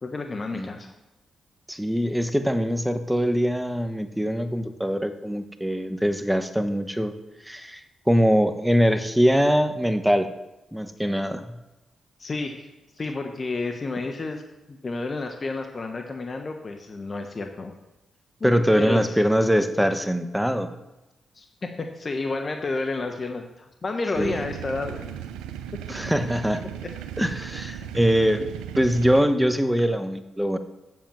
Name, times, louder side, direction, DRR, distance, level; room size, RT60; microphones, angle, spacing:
voice 1, 0.0-0.9 12.2-12.7 13.0-14.4 14.7-17.7 18.4-19.2 21.3-25.2 26.8-26.9, left 3 dB, 45° left, 4 dB, 1.1 m, -31 dB
voice 2, 1.7-7.1 7.5-7.8 8.1-10.3 10.7-11.6 18.4-20.7 24.2-24.4 25.9-26.6 27.2-28.4 28.8-30.6, equal, 5° right, 9 dB, 1.1 m, -23 dB
sound 1, 24.1-29.2, right 10 dB, 85° right, 0.5 m, -36 dB
7.8 x 7.1 x 7.4 m, 0.99 s
hypercardioid pair, 45°, 0 cm